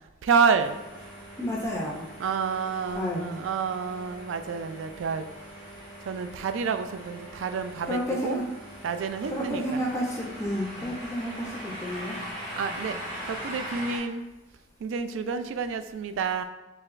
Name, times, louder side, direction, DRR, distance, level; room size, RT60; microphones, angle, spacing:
voice 1, 0.2-0.8 2.2-5.3 6.0-8.4 8.8-9.8 10.8-11.0 12.6-13.0 13.3-14.2 14.8-16.4, right 5 dB, 70° right, 9 dB, 0.3 m, -29 dB
sound 1, 0.6-14.0, equal, 25° right, 1.1 m, -41 dB
voice 2, 1.4-2.0 3.0-3.3 7.9-8.4 9.3-12.2, equal, 15° left, -3 dB, 0.4 m, -30 dB
4.6 x 3.1 x 2.5 m, 1.1 s
head